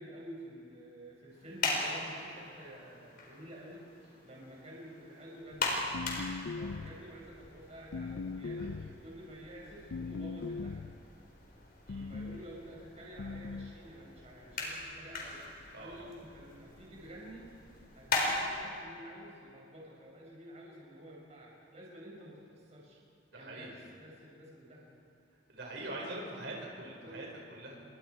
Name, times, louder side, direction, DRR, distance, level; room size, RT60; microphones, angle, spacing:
voice 1, 0.0-5.7 6.5-10.8 12.1-23.0 23.3-24.9 26.0-26.1 26.4-27.2, equal, 35° right, -3 dB, 5.7 m, -50 dB
sound 1, 1.3-18.4, left 3 dB, 55° left, 4.5 m, -40 dB
sound 2, 5.9-7.1 7.9-9.0 9.9-11.0 11.9-12.5 13.2-13.8, left 4 dB, 75° left, 0.5 m, -39 dB
voice 2, 15.7-16.1 23.3-23.7 25.5-27.8, right 1 dB, 70° right, -2 dB, 5.2 m, -43 dB
29.0 x 24.0 x 4.7 m, 2.6 s
head